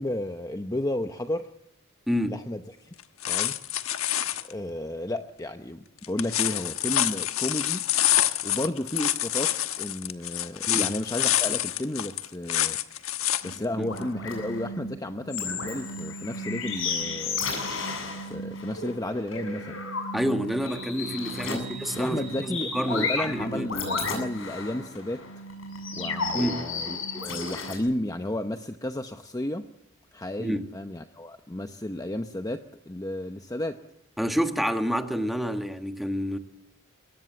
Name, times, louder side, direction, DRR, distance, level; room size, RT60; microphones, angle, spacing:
voice 1, 0.0-1.5 2.3-2.9 3.3-3.6 4.4-7.9 8.4-12.8 13.4-17.5 18.2-19.8 21.4-21.7 22.0-25.4 25.9-29.7 30.1-33.8, left 1 dB, 15° left, 0.8 m, -33 dB
voice 2, 2.1-2.4 10.7-10.9 13.8-13.9 20.1-23.7 26.3-26.6 30.4-30.7 34.2-36.4, equal, ahead, 1.5 m, -28 dB
sound 1, 3.0-4.5 6.0-13.6 14.0-14.1, left 12 dB, 85° left, 1.2 m, -27 dB
sound 2, 13.4-27.8, left 3 dB, 70° left, 7.6 m, -33 dB
23.0 x 18.5 x 8.2 m
head